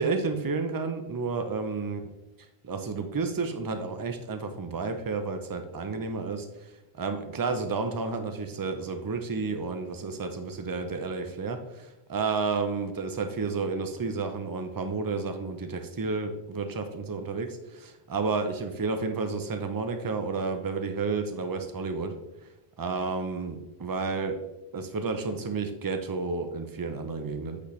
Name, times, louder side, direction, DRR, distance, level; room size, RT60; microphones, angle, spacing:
voice 1, 0.0-2.0 2.6-22.1 22.8-24.4 24.7-27.6, right 4 dB, 30° right, 6 dB, 0.4 m, -31 dB
8.4 x 4.1 x 3.1 m, 0.95 s
omnidirectional pair, 1.1 m